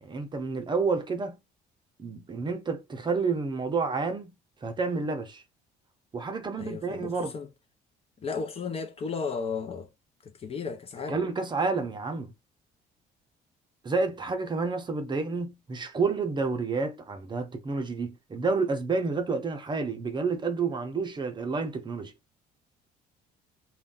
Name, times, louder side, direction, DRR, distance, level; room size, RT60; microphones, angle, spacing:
voice 1, 0.0-1.4 2.0-4.3 4.6-5.4 6.1-7.3 11.1-12.3 13.8-22.1, right 4 dB, 25° right, 0.6 m, -29 dB
voice 2, 6.6-7.5 8.2-9.9 10.4-11.2, left 5 dB, 35° left, 0.6 m, -34 dB
2.5 x 2.2 x 3.6 m
cardioid pair, 110°, 17 cm